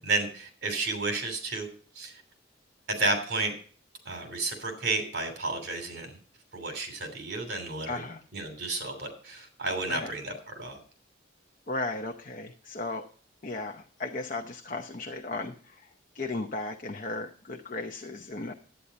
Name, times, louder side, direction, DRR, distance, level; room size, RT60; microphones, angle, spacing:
voice 1, 0.0-1.7 1.9-2.1 2.9-3.5 4.0-6.1 6.5-8.0 8.3-10.8, right 3 dB, 60° right, 5 dB, 3.0 m, -31 dB
voice 2, 7.9-8.2 9.9-10.1 11.7-13.0 13.4-15.9 16.1-18.5, left 2 dB, 45° left, 5 dB, 0.8 m, -35 dB
11.5 x 9.2 x 4.2 m, 0.43 s
head